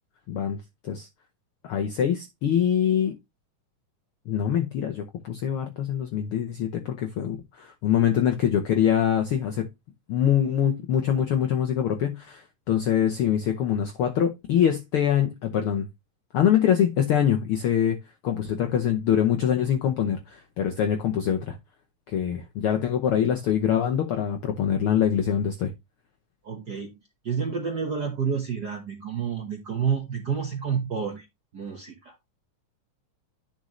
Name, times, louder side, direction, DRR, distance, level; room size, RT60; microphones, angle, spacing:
voice 1, 0.3-0.6 0.8-1.1 1.6-3.1 4.3-9.7 10.1-15.9 16.3-18.0 18.2-21.6 22.1-25.7, left 9 dB, 75° left, 1.3 m, -24 dB
voice 2, 26.4-26.9 27.2-31.2 31.5-32.1, right 6 dB, 55° right, 1.1 m, -29 dB
10.5 x 5.2 x 3.1 m
omnidirectional pair, 3.5 m